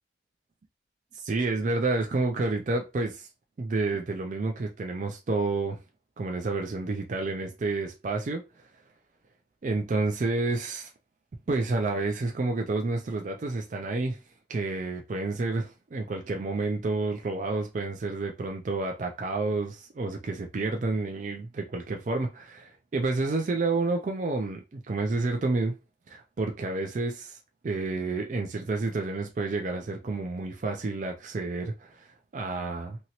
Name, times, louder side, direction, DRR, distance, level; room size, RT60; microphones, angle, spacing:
voice 1, 1.1-3.3 3.6-5.8 6.2-8.5 9.6-10.9 11.5-14.2 14.5-25.8 26.1-27.4 27.6-33.0, right 3 dB, 45° right, 0.4 m, -29 dB
2.8 x 2.8 x 2.8 m
head